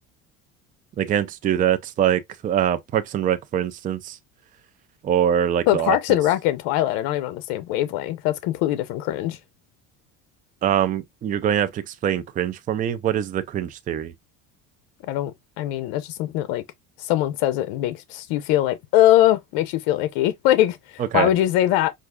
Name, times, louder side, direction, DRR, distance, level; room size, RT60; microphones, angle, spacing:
voice 1, 1.0-4.2 5.0-6.0 10.6-14.1 21.0-21.3, right 10 dB, 25° right, 0.4 m, -23 dB
voice 2, 5.7-9.4 15.1-15.3 15.6-16.6 17.0-21.9, left 13 dB, 80° left, 0.6 m, -22 dB
4.7 x 2.4 x 2.2 m
cardioid pair, 125°, 34 cm